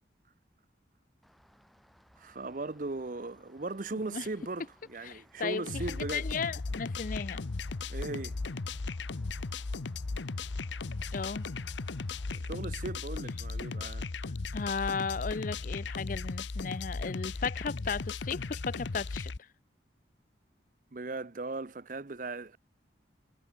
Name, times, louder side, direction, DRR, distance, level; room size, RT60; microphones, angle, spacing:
Rain, 1.2-12.4, equal, ahead, 7.3 m, -63 dB
voice 1, 2.2-6.3 7.9-8.4 12.3-14.1 20.9-22.6, right 3 dB, 45° right, 0.7 m, -38 dB
voice 2, 5.0-7.4 11.1-11.5 14.5-19.3, left 5 dB, 45° left, 0.5 m, -35 dB
sound 1, 5.7-19.4, left 3 dB, 90° left, 0.8 m, -36 dB
head